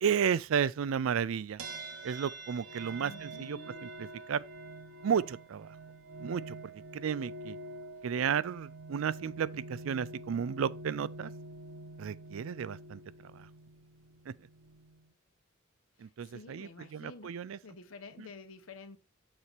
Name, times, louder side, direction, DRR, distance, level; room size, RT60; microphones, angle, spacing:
voice 1, 0.0-1.6 2.0-4.4 5.0-5.7 6.2-6.6 6.9-7.6 8.0-11.3 12.0-13.0 13.4-13.5 14.3-14.4 16.0-17.6 18.2-18.3, right 7 dB, 70° right, 0.4 m, -33 dB
sound 1, 1.6-15.1, right 2 dB, 90° right, 0.9 m, -46 dB
voice 2, 3.0-3.9 16.0-19.0, left 3 dB, 70° left, 1.0 m, -50 dB
6.7 x 4.2 x 4.4 m
head